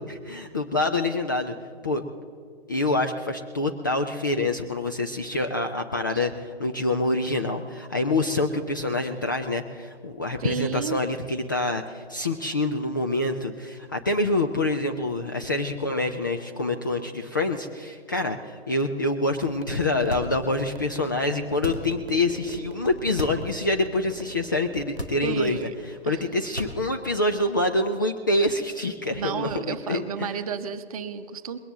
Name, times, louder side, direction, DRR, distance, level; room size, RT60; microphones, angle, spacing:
voice 1, 0.1-1.6 1.8-2.0 2.7-25.7 26.1-30.3, left 2 dB, 20° left, 4 dB, 0.4 m, -26 dB
voice 2, 10.4-11.0 25.2-25.7 26.0-26.2 29.2-31.6, right 6 dB, 35° right, 10 dB, 0.9 m, -32 dB
sound 1, 19.4-25.3, right 4 dB, 60° right, 1.1 m, -42 dB
sound 2, 20.1-20.7 21.5-22.1 23.1-23.5 23.9-24.0 24.9-25.6 26.4-27.1, equal, 85° left, 2.2 m, -35 dB
21.0 x 18.0 x 3.6 m, 2.1 s
figure-of-eight pair, 130°, 31 cm